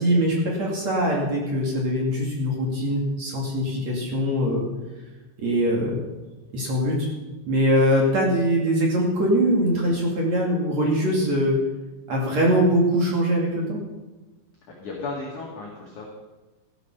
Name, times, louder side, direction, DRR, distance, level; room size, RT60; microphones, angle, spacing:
voice 1, 0.0-4.7 5.4-6.0 6.5-7.1 7.5-11.6 12.1-13.8, equal, 45° right, -1 dB, 3.1 m, -22 dB
voice 2, 14.8-16.1, left 3 dB, 50° left, -3 dB, 3.2 m, -34 dB
14.5 x 13.0 x 5.6 m, 1.1 s
omnidirectional pair, 5.3 m